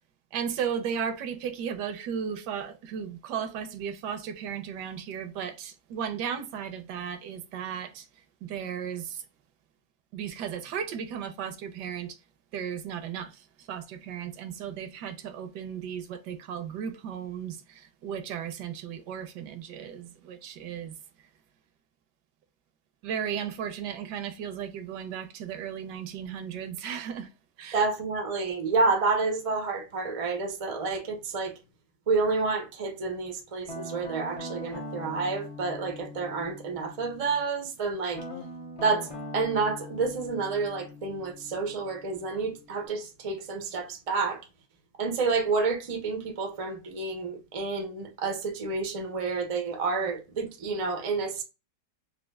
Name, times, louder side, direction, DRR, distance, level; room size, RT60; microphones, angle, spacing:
voice 1, 0.3-9.3 10.1-12.2 12.5-21.3 23.0-27.3 27.6-27.8, right 8 dB, 80° right, 1.2 m, -35 dB
voice 2, 27.7-31.5 32.1-38.2 38.8-44.4 45.0-51.4, right 4 dB, 60° right, 0.3 m, -29 dB
Guitar, 33.7-37.5 38.1-42.9, left 1 dB, 55° left, 0.3 m, -42 dB
4.3 x 2.4 x 2.2 m
omnidirectional pair, 1.9 m